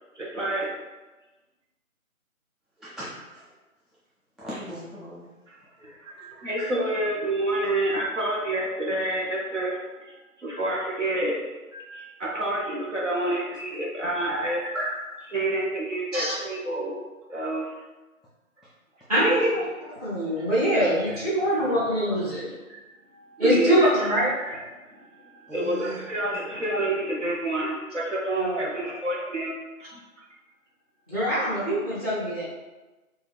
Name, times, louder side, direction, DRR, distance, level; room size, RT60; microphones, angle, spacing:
voice 1, 0.1-0.7 5.5-14.7 15.3-17.0 17.3-17.7 19.2-19.5 19.9-20.0 20.3-21.3 21.7-22.2 22.7-22.8 23.1-29.5 29.9-30.2 31.6-31.7, right 1 dB, 60° right, -4 dB, 0.8 m, -29 dB
voice 2, 2.8-3.4 4.4-5.3 5.8-6.7 14.7-15.2 17.3-17.5 25.5-26.0, equal, ahead, -10 dB, 0.4 m, -37 dB
voice 3, 19.1-19.6 20.0-22.5 23.4-24.3 28.4-28.6 31.1-32.4, equal, 25° right, -10 dB, 1.4 m, -23 dB
3.9 x 2.4 x 3.2 m, 1.1 s
figure-of-eight pair, 175°, 43 cm